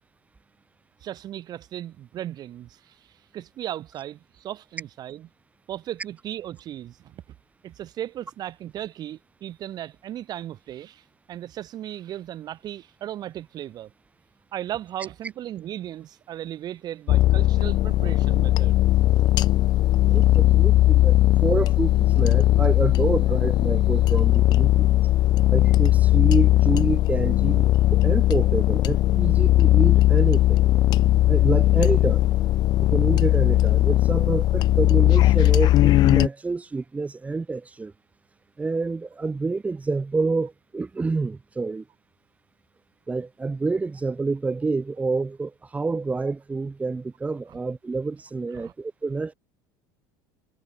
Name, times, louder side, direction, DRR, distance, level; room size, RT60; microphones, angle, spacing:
voice 1, 1.0-5.3 5.7-7.2 7.6-13.9 14.5-18.9 47.5-47.6 48.6-48.7, right 12 dB, 40° right, 5.7 m, -36 dB
sound 1, 17.1-36.3, left 15 dB, 45° left, 0.5 m, -18 dB
voice 2, 20.1-24.9 25.5-30.6 31.3-32.3 32.8-37.9 38.6-41.8 43.1-49.3, right 3 dB, 15° right, 3.4 m, -28 dB
supercardioid pair, 130°, 10 cm